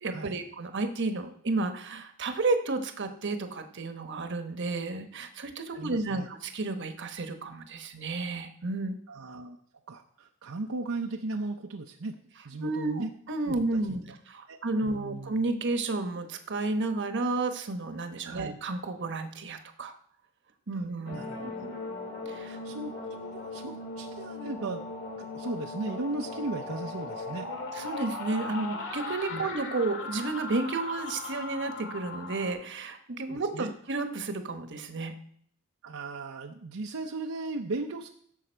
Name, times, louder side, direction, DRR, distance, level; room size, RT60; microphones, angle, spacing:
voice 1, 0.0-9.0 12.6-19.9 20.7-21.1 22.3-22.6 27.7-35.2, right 3 dB, 60° right, 7 dB, 1.1 m, -32 dB
voice 2, 5.7-6.3 9.1-9.6 9.9-12.2 12.4-13.1 13.5-13.6 13.9-14.0 14.5-15.4 18.2-18.6 21.1-21.8 22.5-24.8 25.2-27.5 29.3-29.5 33.3-33.7 35.8-38.1, right 3 dB, 75° right, 2 dB, 0.7 m, -37 dB
sound 1, 21.0-32.5, left 3 dB, 65° left, 2.1 m, -38 dB
16.5 x 7.0 x 4.5 m, 0.64 s
head